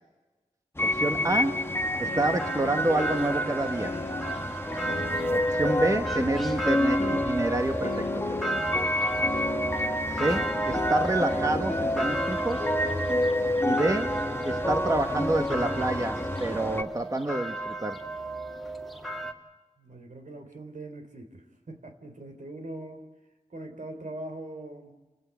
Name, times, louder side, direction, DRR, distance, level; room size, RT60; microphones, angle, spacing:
sound 1, 0.7-16.8, left 1 dB, 15° left, 1.3 m, -29 dB
voice 1, 0.8-1.7 2.0-4.0 5.3-8.5 10.1-12.7 13.6-14.2 14.4-18.0, right 2 dB, 25° right, 6 dB, 1.2 m, -28 dB
sound 2, 1.0-6.6 7.0-8.9 9.3-11.0 11.3-12.2, left 4 dB, 60° left, 0.9 m, -39 dB
sound 3, 2.2-19.3, right 2 dB, ahead, 2.3 m, -34 dB
voice 2, 13.3-13.6 19.8-23.0 23.5-25.0, right 1 dB, 70° right, 6 dB, 3.7 m, -42 dB
30.0 x 15.0 x 8.4 m, 1.2 s
wide cardioid pair, 70°, 14 cm